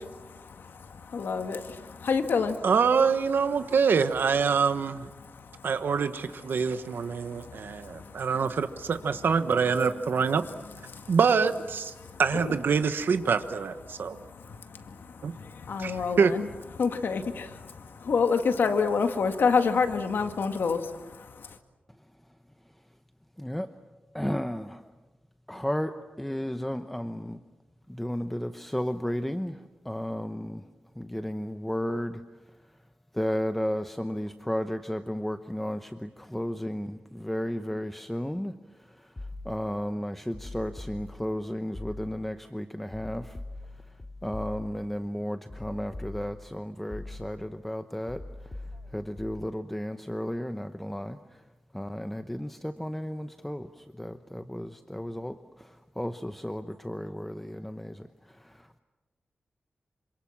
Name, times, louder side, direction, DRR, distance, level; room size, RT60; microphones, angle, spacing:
voice 1, 0.0-2.6 5.2-5.7 6.6-8.3 10.9-11.1 12.0-12.6 13.9-16.5 16.8-21.6, left 5 dB, 90° left, 2.0 m, -29 dB
voice 2, 2.6-5.1 5.6-10.4 11.1-11.9 12.2-14.2 15.2-15.3 15.8-16.3, right 5 dB, 80° right, 1.2 m, -25 dB
voice 3, 23.4-23.7 24.1-24.9 25.5-27.4 27.9-30.7 31.0-32.2 33.1-38.6 39.0-39.1 39.4-43.4 44.2-48.2 48.9-51.4 51.7-58.8, equal, 5° left, 0.9 m, -33 dB
sound 1, 39.2-39.8 40.3-41.4 41.7-42.4 42.9-44.9 45.5-46.5 46.9-47.5 48.1-49.5, left 2 dB, 25° left, 2.4 m, -42 dB
27.5 x 26.0 x 7.4 m
wide cardioid pair, 110°, 3 cm